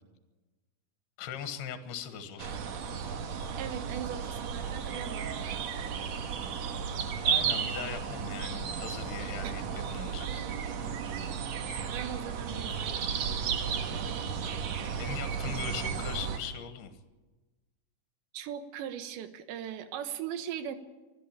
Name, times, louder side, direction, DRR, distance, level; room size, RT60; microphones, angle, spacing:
voice 1, 1.2-2.6 7.2-10.4 14.9-16.9, left 8 dB, 70° left, 8 dB, 3.4 m, -40 dB
sound 1, 2.4-16.4, right 7 dB, 60° right, 1.8 m, -34 dB
voice 2, 3.6-5.3 9.4-9.7 11.9-13.1 14.7-15.2 18.3-20.8, right 9 dB, 90° right, 10 dB, 3.6 m, -39 dB
24.5 x 14.0 x 8.8 m, 1.2 s
omnidirectional pair, 4.9 m